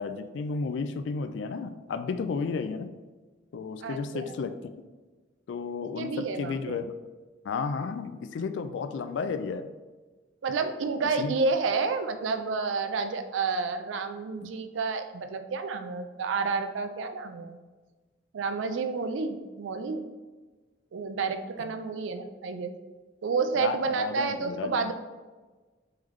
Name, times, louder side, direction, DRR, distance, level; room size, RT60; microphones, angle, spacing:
voice 1, 0.0-3.0 3.5-4.5 5.5-6.9 7.4-9.7 11.2-11.3 14.4-14.5 21.6-21.7 23.6-24.9, left 5 dB, 70° left, 10 dB, 0.3 m, -33 dB
voice 2, 3.8-4.3 6.0-6.8 10.4-17.6 18.3-20.0 20.9-22.7 23.2-24.9, right 4 dB, 85° right, 8 dB, 0.4 m, -30 dB
3.6 x 3.3 x 3.1 m, 1.3 s
head